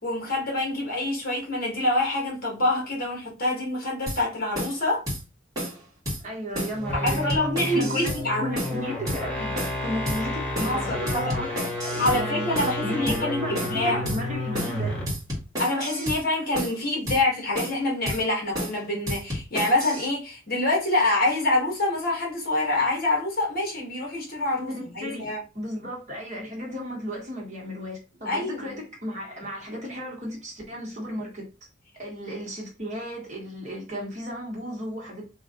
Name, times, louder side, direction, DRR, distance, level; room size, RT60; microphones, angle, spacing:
voice 1, 0.0-5.0 7.0-8.6 10.6-11.3 12.0-14.1 15.6-25.4 28.2-28.8, left 2 dB, 45° left, 1.7 m, -26 dB
sound 1, 4.1-4.2 4.5-4.8 5.1-5.2 5.5-5.8 6.0-6.2 6.5-6.8 7.1-8.2 8.5-8.8 9.1-9.2 9.5-9.8 10.1-10.2 10.5-10.8 11.1-12.2 12.5-12.8 13.1-13.2 13.5-13.8 14.0-14.2 14.5-14.8 15.1-16.2 16.5-16.8 17.1-17.2 17.5-17.8 18.1-18.2 18.5-18.8 19.1-20.1, equal, 20° right, 1.8 m, -31 dB
voice 2, 6.2-7.4 7.6-9.5 9.8-15.0 24.6-31.5 32.0-35.2, equal, 35° right, 1.7 m, -34 dB
sound 2, 6.7-15.2, left 1 dB, 5° left, 1.1 m, -31 dB
3.8 x 3.0 x 3.7 m
head